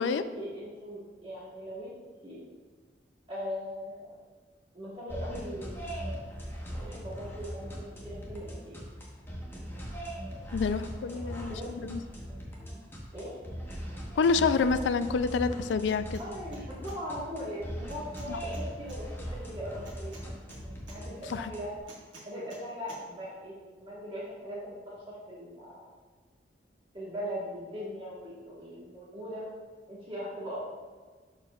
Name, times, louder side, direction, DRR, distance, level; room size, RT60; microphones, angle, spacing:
voice 1, 0.0-2.4 3.3-4.1 4.7-5.9 6.6-8.8 11.0-11.8 13.1-13.3 16.2-20.1 20.9-21.8 22.2-25.9 26.9-29.5 29.9-30.6, equal, 30° right, -8 dB, 1.5 m, -40 dB
sound 1, 5.1-21.8, equal, 15° left, 1.0 m, -40 dB
voice 2, 10.5-12.0 14.2-16.2 18.3-18.4 21.3-21.5, left 5 dB, 75° left, 12 dB, 0.3 m, -28 dB
sound 2, 15.8-16.3 16.5-17.0 17.9-19.0 19.9-21.0 21.9-22.6 22.9-23.0, right 2 dB, 90° right, 1.6 m, -51 dB
11.0 x 4.4 x 2.3 m, 1.5 s
head